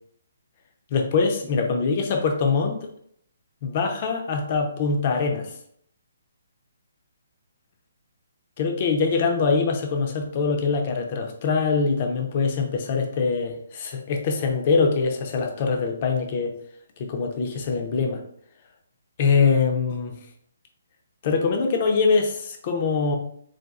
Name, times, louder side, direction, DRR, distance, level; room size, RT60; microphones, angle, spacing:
voice 1, 0.9-2.9 3.6-5.5 8.6-16.5 17.0-18.2 19.2-20.1 21.2-23.2, left 4 dB, 40° left, 3 dB, 0.6 m, -23 dB
4.0 x 2.5 x 2.4 m, 0.67 s
hypercardioid pair, 155°, 0 cm